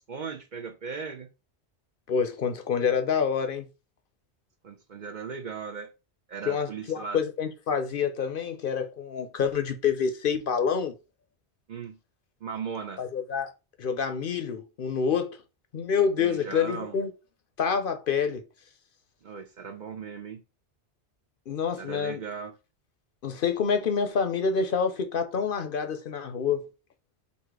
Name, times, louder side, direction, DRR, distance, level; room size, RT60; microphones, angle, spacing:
voice 1, 0.0-1.3 4.6-5.9 6.3-7.2 11.7-12.0 12.4-13.0 16.2-17.0 19.2-20.4 21.8-22.6, right 6 dB, 55° right, 0.6 m, -37 dB
voice 2, 2.1-3.7 6.5-11.0 13.0-13.5 13.8-15.4 15.7-17.1 17.6-18.4 21.5-22.2 23.2-26.7, left 6 dB, 60° left, 0.8 m, -27 dB
4.1 x 2.8 x 4.6 m
omnidirectional pair, 1.1 m